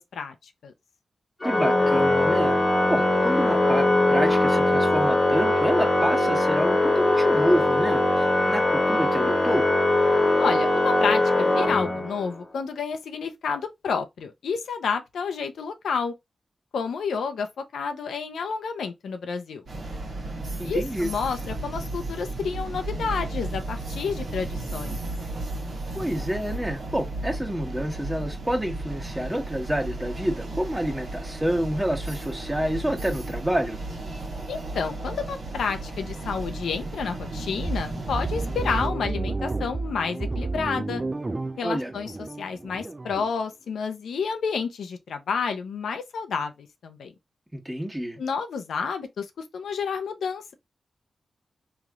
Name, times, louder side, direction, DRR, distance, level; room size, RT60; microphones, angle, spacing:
Organ, 1.4-12.4, left 2 dB, 40° left, 1.0 m, -21 dB
voice 1, 1.4-2.6 2.9-9.7 20.6-21.1 25.9-33.8 41.6-41.9 47.5-48.2, equal, 15° right, 1.2 m, -28 dB
voice 2, 10.4-16.1 16.7-19.6 20.6-25.0 34.5-41.0 41.6-42.1 42.4-47.1 48.2-49.3 49.5-50.5, left 5 dB, 85° left, 0.5 m, -30 dB
sound 1, 19.7-38.9, right 2 dB, 70° right, 1.3 m, -34 dB
sound 2, 37.7-43.3, right 3 dB, 35° right, 0.3 m, -31 dB
3.1 x 2.8 x 2.4 m
supercardioid pair, 40°, 0 cm